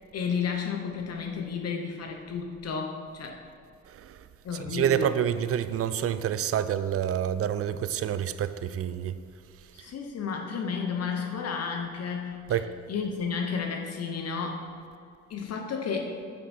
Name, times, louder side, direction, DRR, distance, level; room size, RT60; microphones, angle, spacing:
voice 1, 0.1-3.4 4.4-5.2 9.7-14.7 15.3-16.2, left 6 dB, 55° left, 0.9 m, -32 dB
voice 2, 4.7-9.2 12.5-12.7, right 9 dB, 50° right, 0.4 m, -28 dB
7.4 x 7.0 x 4.3 m
cardioid pair, 90°, 30 cm